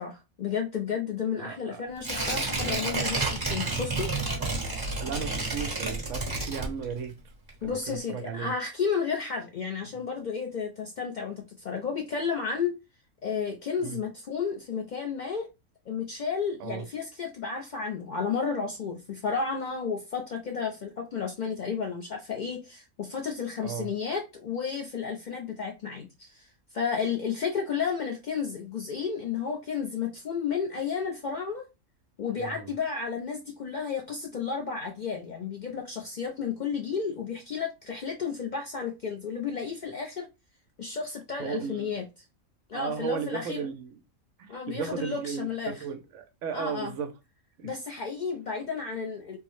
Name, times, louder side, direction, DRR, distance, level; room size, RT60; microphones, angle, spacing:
voice 1, 0.0-4.1 7.6-12.7 13.2-15.5 15.9-31.6 32.2-40.3 40.8-42.0 42.7-43.7 44.5-45.8 46.5-46.9 47.6-49.4, left 6 dB, 85° left, 0.4 m, -32 dB
voice 2, 1.4-1.8 2.6-2.8 5.0-7.2 7.6-8.5 9.8-9.9 13.8-14.0 16.6-16.8 23.6-23.9 32.3-32.7 41.4-41.9 42.7-44.0 44.4-47.1 47.6-47.7, right 6 dB, 70° right, 0.9 m, -35 dB
Tearing, 2.0-7.1 7.5-7.6, right 3 dB, 15° right, 1.0 m, -30 dB
3.6 x 2.0 x 3.0 m
omnidirectional pair, 1.4 m